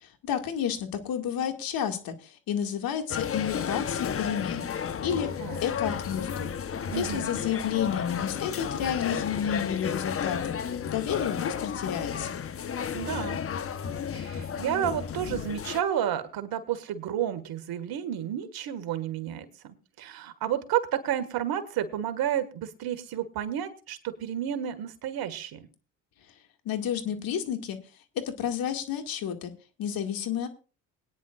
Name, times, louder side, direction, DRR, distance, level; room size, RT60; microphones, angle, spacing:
voice 1, 0.0-5.3 5.6-6.5 6.9-12.4 26.7-27.8 28.2-29.5 29.8-30.5, left 9 dB, 65° left, 5 dB, 2.2 m, -31 dB
sound 1, 3.1-15.8, left 7 dB, 35° left, 1.0 m, -32 dB
voice 2, 6.9-7.3 12.9-13.4 14.1-25.7, right 10 dB, 65° right, 10 dB, 1.8 m, -31 dB
21.0 x 10.0 x 2.5 m, 0.34 s
supercardioid pair, 70°, 38 cm